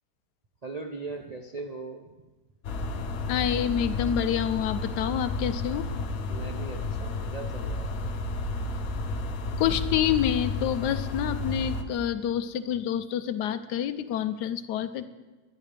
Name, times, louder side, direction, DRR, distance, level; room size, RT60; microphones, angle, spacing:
voice 1, 0.6-2.1 6.3-8.2, right 3 dB, 45° right, 2 dB, 0.5 m, -39 dB
sound 1, 2.6-11.8, left 3 dB, 65° left, 1.3 m, -32 dB
voice 2, 3.3-5.9 9.6-15.1, left 10 dB, 85° left, 11 dB, 1.3 m, -27 dB
21.0 x 10.5 x 3.4 m, 1.2 s
omnidirectional pair, 1.7 m